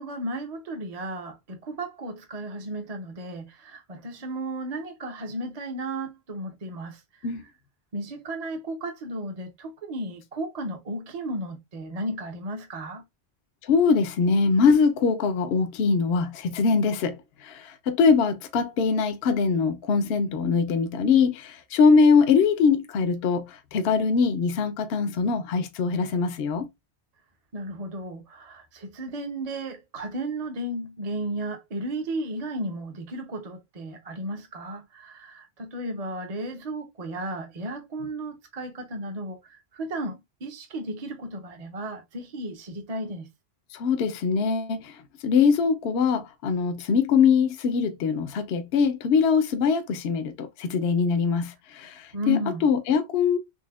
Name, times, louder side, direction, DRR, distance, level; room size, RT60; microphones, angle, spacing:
voice 1, 0.0-7.0 7.9-13.0 27.5-43.3 52.1-52.7, right 1 dB, 40° right, 0.7 m, -34 dB
voice 2, 13.7-17.2 17.4-26.7 43.7-44.9 45.2-53.4, left 5 dB, 70° left, 0.8 m, -22 dB
4.0 x 3.2 x 2.2 m
omnidirectional pair, 1.1 m